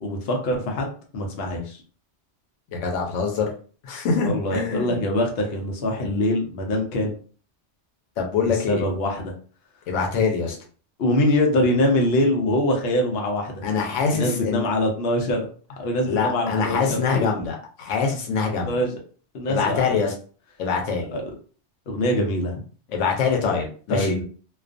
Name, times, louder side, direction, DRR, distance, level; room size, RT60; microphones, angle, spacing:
voice 1, 0.0-1.8 4.2-7.1 8.4-9.3 11.0-13.6 14.1-15.5 15.8-17.5 18.7-18.9 19.3-19.8 21.1-21.2 21.9-22.5 23.9-24.2, left 1 dB, 65° left, 1 dB, 0.8 m, -24 dB
voice 2, 2.7-3.5 3.8-5.0 8.2-8.9 9.9-10.6 13.6-14.7 16.0-18.7 19.5-20.1 20.6-21.1 22.9-24.2, left 5 dB, 90° left, 1 dB, 1.0 m, -24 dB
2.3 x 2.3 x 2.4 m, 0.41 s
omnidirectional pair, 1.2 m